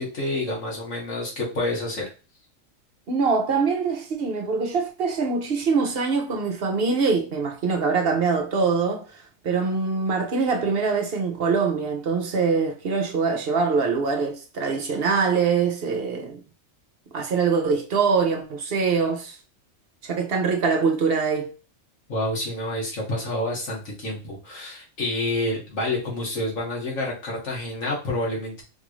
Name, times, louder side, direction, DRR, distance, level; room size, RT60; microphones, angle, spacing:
voice 1, 0.0-2.1 22.1-28.6, left 1 dB, 85° left, 1.9 m, -28 dB
voice 2, 3.1-16.4 17.1-19.4 20.0-21.5, right 5 dB, 55° right, 0.8 m, -23 dB
4.5 x 2.5 x 3.1 m
omnidirectional pair, 1.3 m